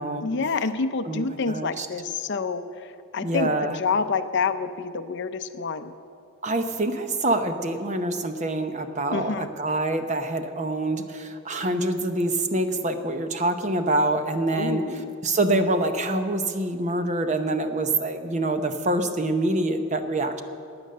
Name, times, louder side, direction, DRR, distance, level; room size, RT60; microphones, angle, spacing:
voice 1, 0.2-5.9 9.1-9.5 14.5-15.1, left 4 dB, 55° left, 10 dB, 0.5 m, -28 dB
voice 2, 1.1-1.9 3.2-3.8 6.4-14.9 15.2-20.4, right 2 dB, 35° right, 8 dB, 0.8 m, -25 dB
16.0 x 9.7 x 6.6 m, 2.5 s
head